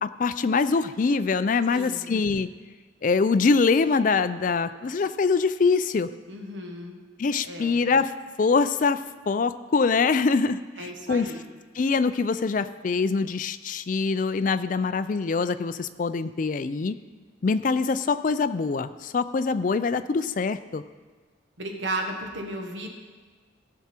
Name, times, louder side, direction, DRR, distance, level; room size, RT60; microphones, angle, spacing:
voice 1, 0.0-2.5 3.0-6.1 7.2-8.1 8.4-9.0 9.3-11.3 11.8-17.0 17.4-20.8, left 4 dB, 40° left, 12 dB, 0.3 m, -24 dB
voice 2, 1.7-2.0 6.3-7.0 7.4-7.8 10.8-11.4 21.6-22.9, right 1 dB, 70° right, 3 dB, 1.3 m, -34 dB
16.0 x 6.0 x 4.4 m, 1.5 s
head